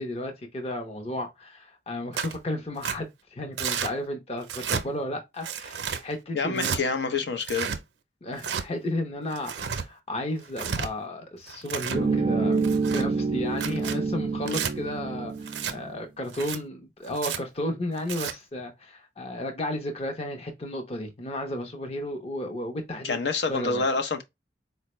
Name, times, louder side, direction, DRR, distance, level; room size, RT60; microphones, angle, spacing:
voice 1, 0.0-6.8 8.2-12.6 12.9-23.2 23.5-23.8, left 1 dB, 35° left, 0.6 m, -33 dB
Tearing, 2.1-2.4 2.8-3.0 3.6-3.9 4.4-4.8 5.4-6.0 6.6-6.8 7.4-7.8 8.4-8.6 9.3-9.8 10.4-10.9 11.5-12.0 12.6-13.0 13.5-14.0 14.5-14.7 15.5-15.7 16.3-16.6 17.1-17.4 18.0-18.3, right 7 dB, 90° right, 0.5 m, -31 dB
voice 2, 6.3-7.7 23.0-24.2, left 4 dB, 75° left, 0.6 m, -27 dB
sound 1, 11.9-15.9, right 4 dB, 30° right, 0.3 m, -27 dB
4.2 x 2.1 x 3.0 m
head